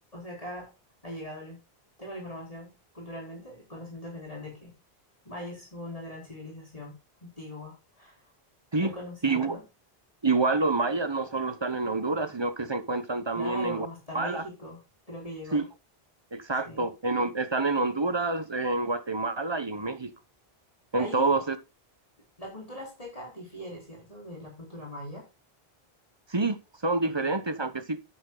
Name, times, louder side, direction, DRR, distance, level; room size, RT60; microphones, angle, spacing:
voice 1, 0.1-0.7 1.0-1.6 2.0-4.7 5.2-6.9 7.2-8.3 8.8-9.6 13.3-14.8 15.1-15.7 16.6-16.9 21.0-21.3 22.4-25.3 27.0-27.3, left 1 dB, 35° left, 4.4 m, -41 dB
voice 2, 9.2-9.6 10.2-13.9 14.1-14.4 15.5-15.6 16.3-20.1 20.9-21.6 26.3-28.0, right 3 dB, 30° right, 0.9 m, -27 dB
10.0 x 8.4 x 3.9 m
omnidirectional pair, 1.0 m